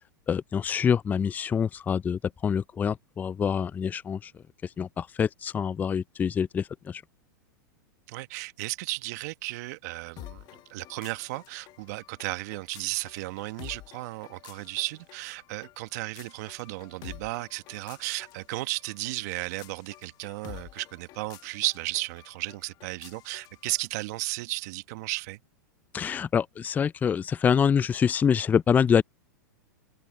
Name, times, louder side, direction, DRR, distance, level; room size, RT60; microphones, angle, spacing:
voice 1, 0.3-4.3 4.8-7.0 25.9-29.0, left 7 dB, 15° left, 0.4 m, -26 dB
voice 2, 8.1-10.4 10.7-25.4, right 22 dB, 60° right, 1.5 m, -34 dB
sound 1, 10.2-23.9, left 16 dB, 40° left, 1.4 m, -50 dB
hypercardioid pair, 110°, 10 cm